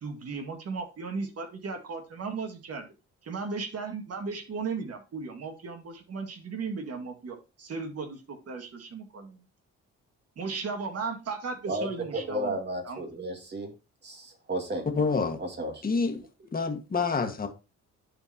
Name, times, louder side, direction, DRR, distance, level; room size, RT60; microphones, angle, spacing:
voice 1, 0.0-2.9 3.2-9.4 10.4-12.6 12.9-13.1, right 4 dB, 55° right, 5 dB, 2.0 m, -36 dB
voice 2, 11.7-13.7 14.0-14.9 15.4-15.7, right 1 dB, 35° right, 3 dB, 2.2 m, -33 dB
voice 3, 14.9-15.4 15.8-16.2 16.5-17.5, left 4 dB, 30° left, 4 dB, 1.7 m, -27 dB
11.0 x 4.4 x 2.9 m, 0.29 s
cardioid pair, 90°, 30 cm